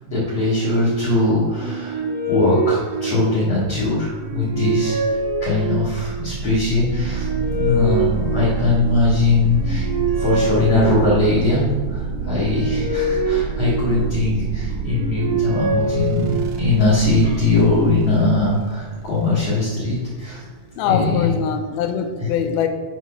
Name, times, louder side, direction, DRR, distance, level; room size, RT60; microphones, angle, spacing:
voice 1, 0.0-2.0 2.3-9.9 10.2-11.6 11.9-20.4 20.8-21.3, left 2 dB, 50° left, -9 dB, 2.1 m, -20 dB
sound 1, 1.5-3.6 4.1-6.1 6.8-8.9 9.4-11.4 12.1-14.3 14.8-16.8, right 2 dB, 15° right, 1.3 m, -25 dB
sound 2, 4.2-21.3, right 6 dB, 80° right, 2.0 m, -29 dB
voice 2, 20.8-22.7, left 8 dB, 80° left, 6 dB, 2.4 m, -22 dB
6.7 x 4.6 x 5.7 m, 1.4 s
omnidirectional pair, 4.6 m